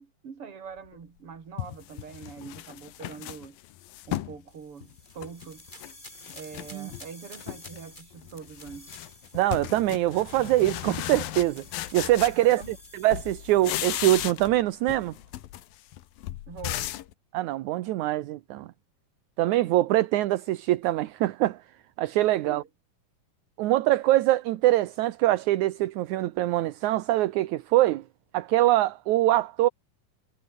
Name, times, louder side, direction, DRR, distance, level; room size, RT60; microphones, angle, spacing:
voice 1, 0.0-3.6 4.1-5.6 6.3-8.9 12.3-12.8 16.5-17.0 22.4-22.7, right 6 dB, 40° right, 3.6 m, -43 dB
sound 1, 0.9-1.0 1.6-4.4 4.8-5.9 6.2-7.1 7.4-7.8 8.1-12.8 13.1-14.6 14.9-17.1, left 14 dB, 85° left, 3.0 m, -36 dB
sound 2, 4.5-14.5, left 1 dB, 10° left, 7.3 m, -51 dB
voice 2, 9.3-11.6 11.9-12.6 12.9-15.1 17.3-18.7 19.4-21.6 22.0-22.6 23.6-28.0 28.3-29.7, right 16 dB, 70° right, 2.0 m, -23 dB
omnidirectional pair, 4.0 m